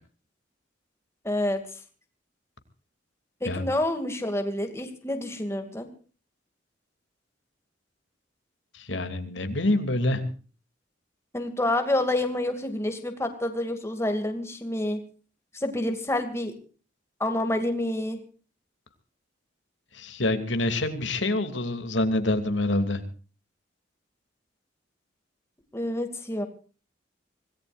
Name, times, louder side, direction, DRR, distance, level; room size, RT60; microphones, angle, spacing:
voice 1, 1.2-1.6 3.4-5.9 11.3-15.0 15.5-16.5 17.2-18.2 25.7-26.5, left 1 dB, 15° left, 6 dB, 2.4 m, -28 dB
voice 2, 8.7-10.2 19.9-23.0, left 2 dB, 80° left, 7 dB, 2.7 m, -26 dB
26.0 x 18.5 x 2.5 m, 0.39 s
head